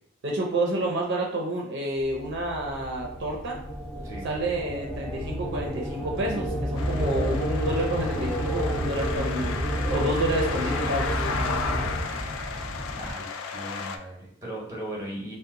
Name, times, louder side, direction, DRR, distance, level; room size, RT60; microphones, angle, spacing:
voice 1, 0.2-3.6 4.2-9.6 9.9-11.2, right 1 dB, 60° right, -1 dB, 0.5 m, -29 dB
sound 1, 2.1-11.9, equal, ahead, 0.5 m, -31 dB
sound 2, 6.5-13.1, right 1 dB, 60° left, 0.8 m, -36 dB
sound 3, 6.8-14.0, left 5 dB, 80° left, 0.3 m, -34 dB
voice 2, 12.9-15.3, right 1 dB, 15° right, -3 dB, 0.9 m, -37 dB
2.7 x 2.1 x 3.6 m, 0.76 s
head